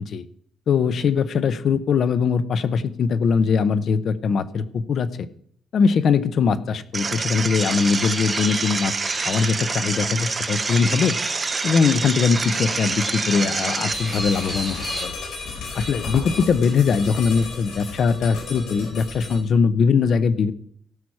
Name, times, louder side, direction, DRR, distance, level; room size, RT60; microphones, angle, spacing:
voice 1, 0.7-5.3 5.7-11.2 11.6-15.1 15.7-20.5, left 5 dB, 50° left, 14 dB, 0.8 m, -21 dB
sound 1, 6.9-13.9, right 4 dB, 25° right, 0.5 m, -27 dB
sound 2, 7.6-15.0, right 1 dB, 5° right, 3.2 m, -31 dB
sound 3, 13.9-19.4, left 4 dB, 75° left, 4.2 m, -34 dB
17.0 x 6.0 x 4.8 m, 0.64 s
cardioid pair, 150°, 0 cm